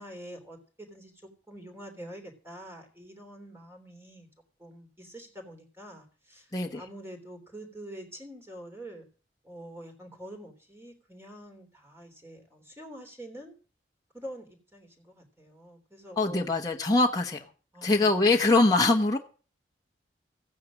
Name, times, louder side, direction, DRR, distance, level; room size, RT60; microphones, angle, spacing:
voice 1, 0.0-4.3 4.6-9.1 9.4-13.6 14.1-16.5 17.7-18.4, right 1 dB, 15° right, 3 dB, 3.2 m, -46 dB
voice 2, 16.2-17.4 17.8-19.2, left 2 dB, 20° left, 0 dB, 1.1 m, -23 dB
15.5 x 9.4 x 6.2 m, 0.38 s
head